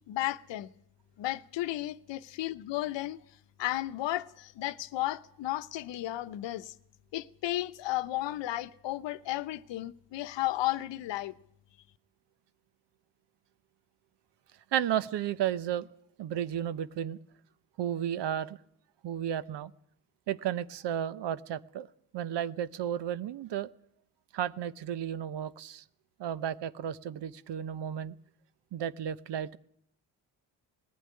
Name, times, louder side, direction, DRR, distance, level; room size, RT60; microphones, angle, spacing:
voice 1, 0.1-0.7 1.2-3.2 3.6-6.7 7.1-11.4, left 16 dB, 85° left, 0.9 m, -33 dB
voice 2, 14.7-15.9 16.2-17.2 17.8-18.6 19.0-19.7 20.3-21.9 22.1-23.7 24.3-25.8 26.2-28.1 28.7-29.6, right 10 dB, 75° right, 0.9 m, -33 dB
20.0 x 14.5 x 9.6 m
cardioid pair, 95°, 42 cm